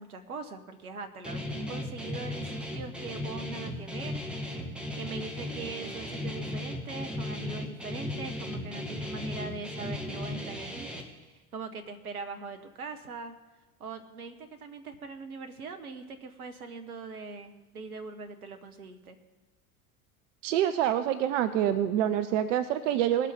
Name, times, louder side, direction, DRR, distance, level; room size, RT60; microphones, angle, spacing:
voice 1, 0.0-4.2 4.6-10.9 11.3-13.3 13.8-19.2, right 4 dB, 75° right, 7 dB, 1.4 m, -41 dB
Guitar, 1.2-11.0, left 1 dB, ahead, 1.9 m, -36 dB
voice 2, 20.4-23.3, right 10 dB, 55° right, 11 dB, 0.8 m, -26 dB
20.0 x 7.4 x 3.7 m, 1.1 s
figure-of-eight pair, 70°, 44 cm